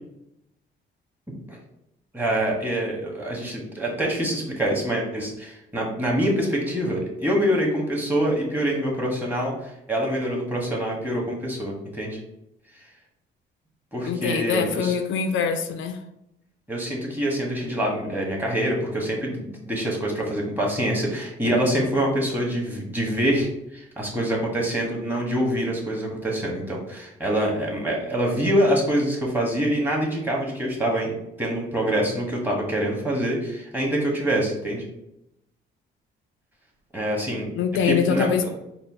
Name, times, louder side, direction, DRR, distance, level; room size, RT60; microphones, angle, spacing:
voice 1, 2.1-12.2 13.9-14.9 16.7-31.1 31.4-34.9 36.9-37.5 37.8-38.5, right 1 dB, 10° right, -2 dB, 1.3 m, -25 dB
voice 2, 14.1-16.0 37.6-38.5, left 6 dB, 75° left, 7 dB, 0.5 m, -24 dB
4.3 x 2.0 x 4.1 m, 0.84 s
cardioid pair, 90°, 20 cm